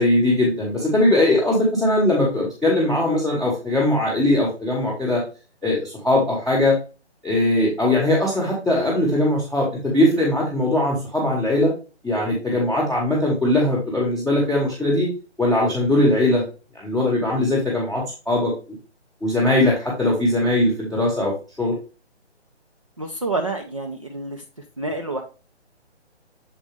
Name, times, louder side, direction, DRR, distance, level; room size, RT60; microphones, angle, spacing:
voice 1, 0.0-5.2 5.6-6.7 7.2-11.7 12.0-15.1 15.4-16.4 16.7-18.5 19.2-21.3 21.6-21.7, left 1 dB, ahead, -12 dB, 0.8 m, -20 dB
voice 2, 23.0-24.4 24.8-25.2, right 2 dB, 30° right, 2 dB, 0.5 m, -28 dB
7.4 x 4.2 x 3.4 m, 0.32 s
hypercardioid pair, 175°, 34 cm